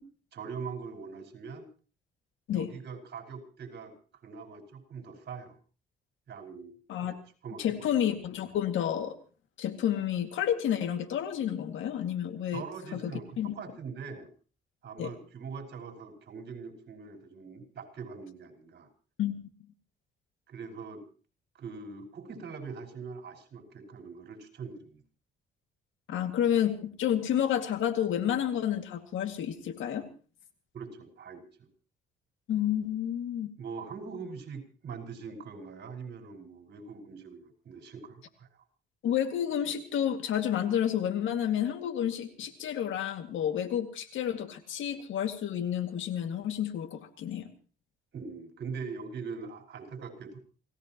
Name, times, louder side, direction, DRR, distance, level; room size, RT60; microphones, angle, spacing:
voice 1, 0.3-1.7 2.5-5.6 6.3-6.7 7.0-7.1 7.4-7.9 12.5-14.3 14.8-18.9 20.5-21.0 21.6-25.0 30.7-31.4 33.6-38.6 48.1-50.4, right 5 dB, 60° right, 3 dB, 5.4 m, -42 dB
voice 2, 7.6-9.2 9.6-12.6 12.9-13.1 13.4-13.5 15.0-15.1 19.2-19.5 26.1-30.1 32.5-33.5 39.0-47.5, left 10 dB, 80° left, 7 dB, 2.3 m, -30 dB
27.5 x 17.5 x 3.0 m, 0.38 s
cardioid pair, 90°, 20 cm